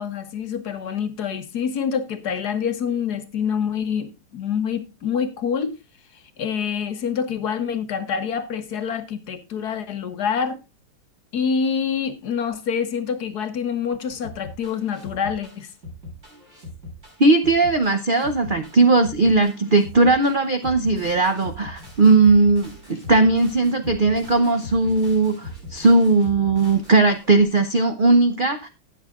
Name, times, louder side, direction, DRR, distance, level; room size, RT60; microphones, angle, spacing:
voice 1, 0.0-5.8 6.4-10.6 11.3-15.7, left 7 dB, 60° left, 1.5 m, -26 dB
sound 1, 14.2-27.4, left 1 dB, 35° right, 8.5 m, -40 dB
voice 2, 17.2-28.7, right 3 dB, 70° right, 0.5 m, -18 dB
19.0 x 7.1 x 2.4 m
omnidirectional pair, 2.1 m